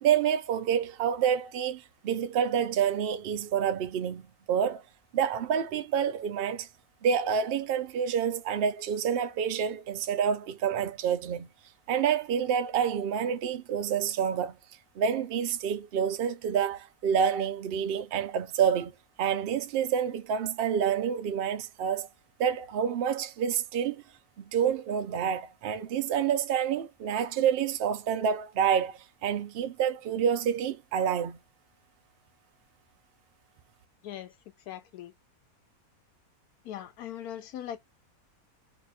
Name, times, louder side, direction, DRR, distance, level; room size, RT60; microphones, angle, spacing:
voice 1, 0.0-4.8 5.1-6.7 7.0-11.5 11.9-14.6 15.0-18.9 19.2-22.1 22.4-24.0 24.4-31.4, right 8 dB, 65° right, 0.5 m, -28 dB
voice 2, 34.7-35.1 36.6-37.8, left 11 dB, 85° left, 1.2 m, -40 dB
2.9 x 2.4 x 4.0 m
omnidirectional pair, 1.6 m